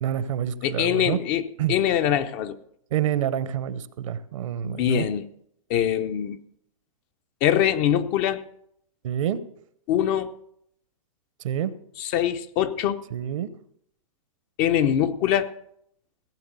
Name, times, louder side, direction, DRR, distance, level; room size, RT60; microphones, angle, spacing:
voice 1, 0.0-1.2 1.6-1.7 2.9-5.1 9.0-9.4 11.4-11.7 13.1-13.5, right 10 dB, 65° right, 1.0 m, -27 dB
voice 2, 0.6-2.6 4.6-5.2 5.7-6.4 7.4-8.4 9.9-10.3 12.0-13.0 14.6-15.5, left 10 dB, 40° left, 0.9 m, -23 dB
16.5 x 7.1 x 6.9 m
hypercardioid pair, 120°, 18 cm